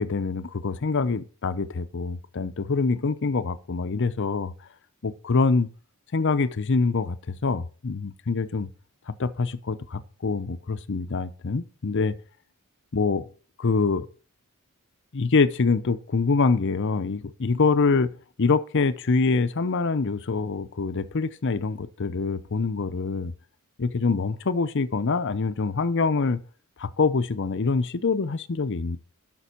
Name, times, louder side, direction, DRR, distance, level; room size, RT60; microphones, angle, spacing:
voice 1, 0.0-4.5 5.0-5.7 6.1-8.7 9.1-12.2 12.9-13.3 13.6-14.1 15.1-18.1 18.4-23.3 23.8-26.4 26.8-29.0, left 4 dB, 55° left, 0.7 m, -25 dB
13.0 x 6.0 x 4.4 m
head